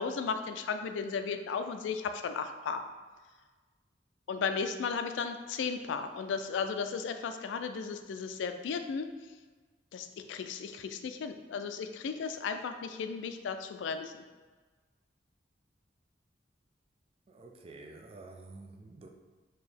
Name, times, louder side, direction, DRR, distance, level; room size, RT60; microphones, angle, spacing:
voice 1, 0.0-2.8 4.3-9.1 9.9-14.2, left 5 dB, 80° left, 8 dB, 0.3 m, -35 dB
voice 2, 17.3-19.1, right 2 dB, 30° right, 3 dB, 0.4 m, -49 dB
4.5 x 2.9 x 3.3 m, 1.4 s
head